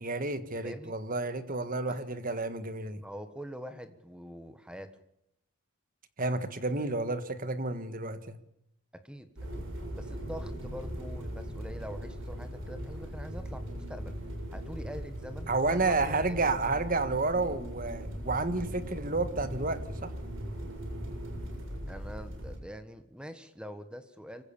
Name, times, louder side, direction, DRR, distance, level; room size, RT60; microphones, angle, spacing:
voice 1, 0.0-3.0 6.2-8.4 15.5-20.1, right 3 dB, 40° right, 11 dB, 1.6 m, -31 dB
voice 2, 3.0-4.9 6.8-6.9 8.9-9.3 9.6-9.7 9.9-16.4 21.9-24.4, equal, 5° right, 10 dB, 1.4 m, -44 dB
sound 1, 9.4-22.6, equal, 65° right, 7.1 m, -39 dB
25.0 x 16.0 x 7.2 m, 0.78 s
head